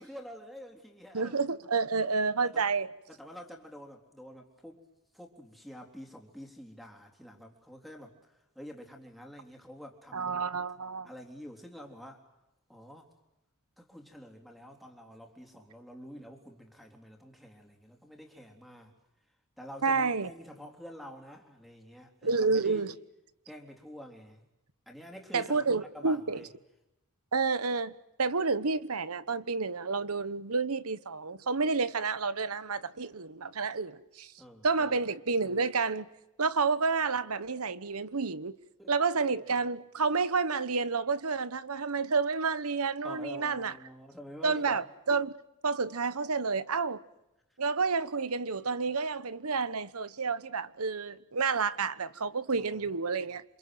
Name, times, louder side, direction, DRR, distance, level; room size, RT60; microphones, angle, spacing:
voice 1, 0.0-1.4 2.4-2.7 3.1-4.8 5.1-10.4 11.0-12.2 12.7-13.1 13.8-18.9 19.6-22.9 23.5-24.4 24.9-26.5 34.4-35.0 38.8-38.9 39.3-39.4 43.0-44.8 52.5-52.9, equal, ahead, 3.7 m, -48 dB
voice 2, 1.1-2.9 10.1-11.1 19.8-20.3 22.2-22.9 25.3-26.4 27.3-34.3 34.6-36.1 36.4-38.6 38.9-43.7 44.4-45.3 45.6-47.0 47.6-53.4, right 4 dB, 80° right, 1.1 m, -30 dB
28.5 x 26.5 x 7.9 m
head